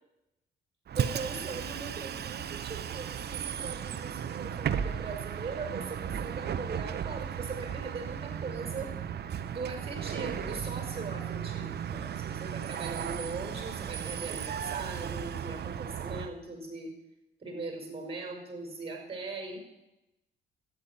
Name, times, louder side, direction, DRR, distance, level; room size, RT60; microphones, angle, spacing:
Bus, 0.9-16.3, right 8 dB, 55° right, 0.9 m, -35 dB
voice 1, 1.0-8.9 9.5-16.9 17.4-19.6, right 3 dB, 30° right, 4 dB, 5.2 m, -40 dB
sound 1, 5.0-10.9, right 3 dB, 10° right, 1.8 m, -52 dB
13.0 x 9.5 x 8.9 m, 0.93 s
cardioid pair, 90°, 20 cm